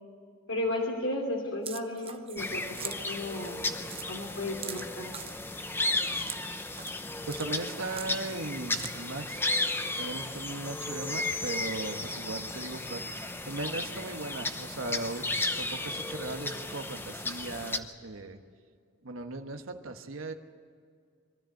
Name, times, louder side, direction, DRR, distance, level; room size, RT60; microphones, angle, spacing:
voice 1, 0.5-3.7 4.1-5.1, left 1 dB, 80° left, -1 dB, 2.9 m, -34 dB
sound 1, 1.6-2.4 2.7-3.0 3.4-3.5 3.9-4.1 4.6-5.3 6.1-6.4 6.7-7.0 7.3-7.5 7.9-8.4 8.7-8.9, right 8 dB, 30° right, 0.8 m, -41 dB
sound 2, 2.4-17.8, left 2 dB, 10° left, 0.8 m, -34 dB
voice 2, 7.3-9.4 10.0-15.2 15.6-18.4 19.0-20.3, right 2 dB, 75° right, 5 dB, 1.3 m, -38 dB
23.0 x 13.0 x 9.2 m, 2.1 s
head